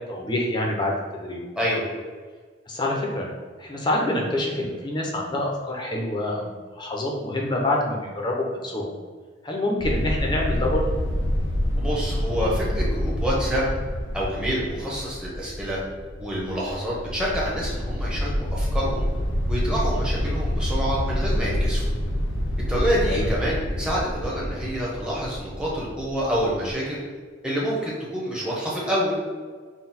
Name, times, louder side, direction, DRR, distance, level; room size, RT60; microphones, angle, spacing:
voice 1, 0.1-1.4 2.7-3.3 3.6-8.9 9.4-10.8 23.1-23.3, left 1 dB, 25° left, -1 dB, 0.6 m, -26 dB
sound 1, 9.8-26.7, equal, 90° left, 0.6 m, -27 dB
voice 2, 11.8-13.7 14.1-15.8 16.2-19.1 19.5-21.8 22.7-27.0 27.4-29.2, equal, 5° right, -6 dB, 0.9 m, -27 dB
3.9 x 2.2 x 4.1 m, 1.5 s
head